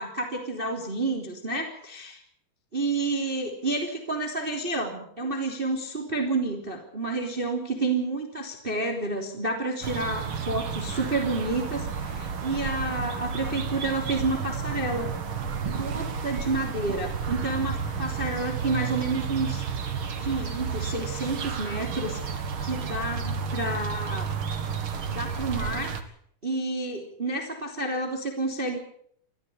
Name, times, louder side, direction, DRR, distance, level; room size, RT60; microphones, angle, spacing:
voice 1, 0.0-2.2 2.7-15.1 15.8-19.6 20.2-24.3 25.1-25.9 26.4-28.8, right 2 dB, 15° right, 3 dB, 2.9 m, -30 dB
sound 1, 9.8-26.0, right 6 dB, 45° right, 1.8 m, -31 dB
23.5 x 15.5 x 8.6 m, 0.63 s
omnidirectional pair, 4.5 m